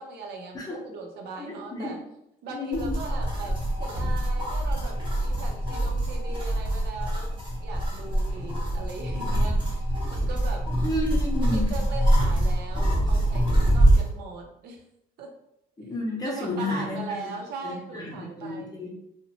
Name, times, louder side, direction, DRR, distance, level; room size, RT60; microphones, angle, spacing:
voice 1, 0.0-2.0 2.4-10.6 11.4-14.8 15.2-15.3 16.2-18.9, right 4 dB, 75° right, 1 dB, 0.6 m, -39 dB
voice 2, 1.4-1.9 2.5-3.0 10.8-11.7 15.8-17.3 17.6-18.9, left 2 dB, 20° left, -2 dB, 0.7 m, -31 dB
sound 1, 2.7-14.1, right 1 dB, 30° right, 0.9 m, -24 dB
2.7 x 2.1 x 2.8 m, 0.80 s
cardioid pair, 110°, 17 cm